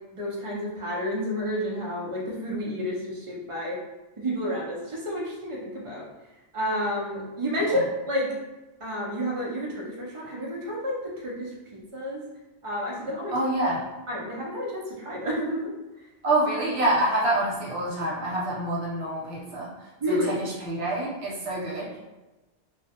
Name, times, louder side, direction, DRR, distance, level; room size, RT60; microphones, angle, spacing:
voice 1, 0.1-3.8 4.2-6.1 6.5-8.3 8.8-12.2 12.6-13.3 14.1-15.7 20.0-20.3, equal, 40° right, -4 dB, 0.5 m, -30 dB
voice 2, 13.3-13.8 16.2-22.0, right 1 dB, 80° right, -5 dB, 1.0 m, -27 dB
2.3 x 2.1 x 2.7 m, 1.1 s
omnidirectional pair, 1.1 m